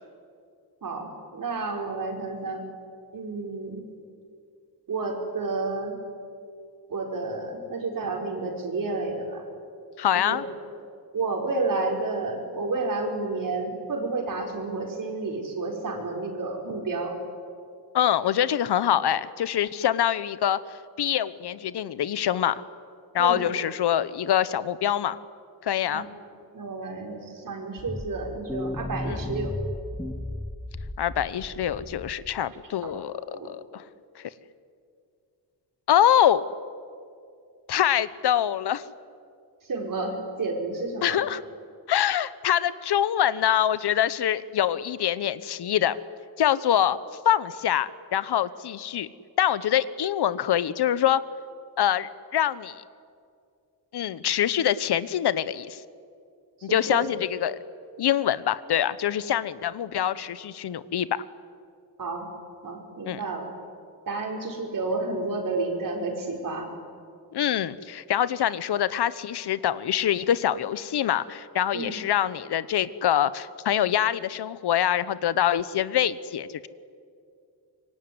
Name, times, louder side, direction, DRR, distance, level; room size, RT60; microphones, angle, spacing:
voice 1, 0.8-2.6 3.1-3.9 4.9-6.0 6.9-9.4 10.1-10.4 11.1-17.2 23.2-23.5 25.9-26.0 26.5-29.5 32.8-32.9 33.2-33.5 39.7-41.2 56.7-57.1 62.0-62.3 62.6-63.4 64.1-66.7 71.7-71.9, right 3 dB, 55° right, 2 dB, 5.3 m, -30 dB
voice 2, 10.0-10.4 17.9-20.6 21.0-22.6 23.1-25.2 25.6-26.1 29.1-29.2 31.0-33.8 35.9-36.4 37.7-38.8 41.0-41.4 41.9-46.0 46.4-47.0 47.2-49.1 49.4-51.2 51.8-52.8 53.9-55.8 56.6-57.6 58.0-61.2 63.0-63.2 67.3-76.7, left 10 dB, 75° left, 16 dB, 1.0 m, -25 dB
sound 1, 27.8-32.4, left 1 dB, 10° left, 1.2 m, -35 dB
26.0 x 23.0 x 9.7 m, 2.3 s
wide cardioid pair, 135°, 40 cm